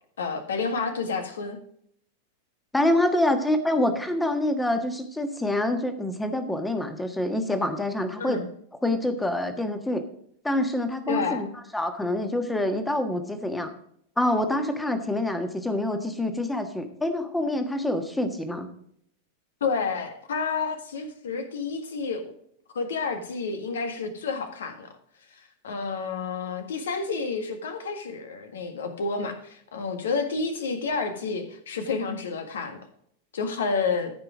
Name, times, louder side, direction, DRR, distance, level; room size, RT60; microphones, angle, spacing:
voice 1, 0.2-1.6 8.2-8.4 11.1-11.4 19.6-22.2 22.7-24.9 25.3-32.8 33.3-34.1, left 4 dB, 65° left, 7 dB, 1.7 m, -30 dB
voice 2, 2.7-8.4 8.8-10.0 10.4-11.5 11.7-13.7 14.2-18.7, left 1 dB, 5° left, 8 dB, 1.4 m, -26 dB
14.0 x 5.7 x 4.9 m, 0.68 s
figure-of-eight pair, 90°, 0 cm